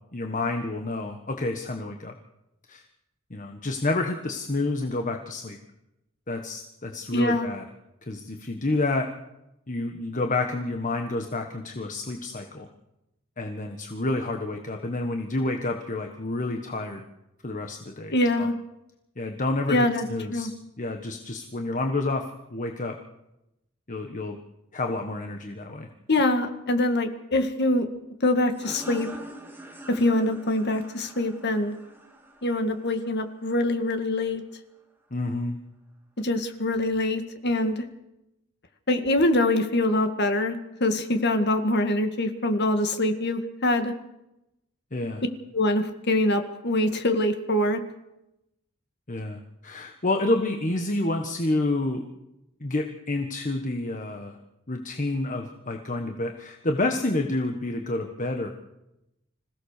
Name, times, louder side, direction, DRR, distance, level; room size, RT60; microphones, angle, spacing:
voice 1, 0.1-2.1 2.7-2.8 3.3-5.6 6.3-7.6 8.1-9.1 9.7-12.7 13.4-17.0 17.4-18.5 19.2-20.5 20.8-22.2 22.5-23.0 23.9-24.4 24.7-25.9 35.1-35.6 44.9-45.2 49.1-52.0 52.6-54.4 54.7-58.5, left 2 dB, 35° left, 4 dB, 1.4 m, -29 dB
voice 2, 7.1-7.5 18.1-18.5 19.7-20.1 20.3-20.5 26.1-27.9 28.2-29.1 29.9-31.7 32.4-34.4 36.2-37.9 38.9-43.9 45.5-47.8, left 1 dB, 50° left, 7 dB, 1.9 m, -24 dB
sound 1, 28.5-33.9, right 1 dB, 10° right, 2.0 m, -44 dB
26.0 x 16.5 x 6.7 m, 0.91 s
head